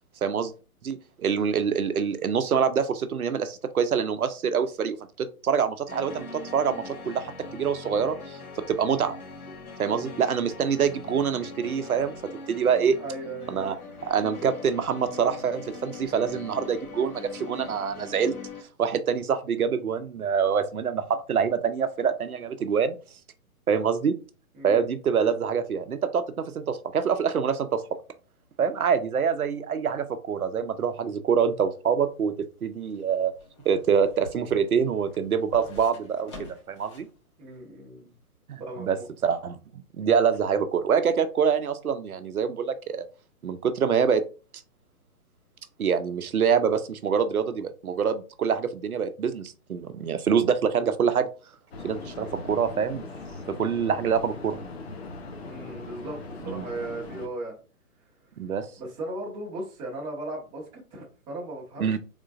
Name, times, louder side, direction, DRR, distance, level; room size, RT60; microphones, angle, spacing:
voice 1, 0.2-0.5 0.8-9.2 9.8-12.1 12.5-13.0 13.5-13.7 14.0-18.3 18.8-23.0 23.7-24.2 24.6-27.8 28.6-32.3 32.6-33.3 33.6-37.1 38.5-43.1 43.4-44.2 45.8-51.3 51.8-53.0 53.6-54.6 56.5-56.7 58.4-58.7 61.8-62.0, right 7 dB, 70° right, 0.7 m, -25 dB
sound 1, 5.9-18.6, left 3 dB, 80° left, 1.0 m, -42 dB
voice 2, 9.9-10.2 13.0-13.7 24.5-24.9 37.4-38.1 38.6-39.1 55.4-57.6 58.8-61.9, right 2 dB, 10° right, 0.8 m, -37 dB
sound 2, 32.1-37.2 37.5-37.6, left 2 dB, 20° left, 0.6 m, -47 dB
sound 3, 51.7-57.3, left 3 dB, 45° left, 0.8 m, -40 dB
3.7 x 3.6 x 2.5 m
figure-of-eight pair, 130°, 44 cm